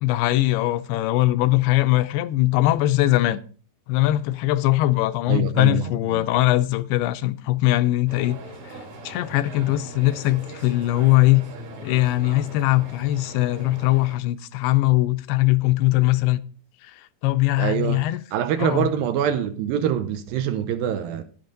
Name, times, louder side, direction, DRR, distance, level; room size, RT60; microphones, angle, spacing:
voice 1, 0.0-3.4 3.9-8.4 9.1-11.4 11.8-16.4 17.2-18.2 18.6-18.9, left 17 dB, 85° left, 2.6 m, -21 dB
voice 2, 5.3-6.2 17.6-18.1 18.3-21.2, right 9 dB, 75° right, 2.3 m, -25 dB
sound 1, 8.1-14.2, right 1 dB, 60° right, 4.3 m, -40 dB
10.5 x 10.5 x 3.8 m
omnidirectional pair, 4.6 m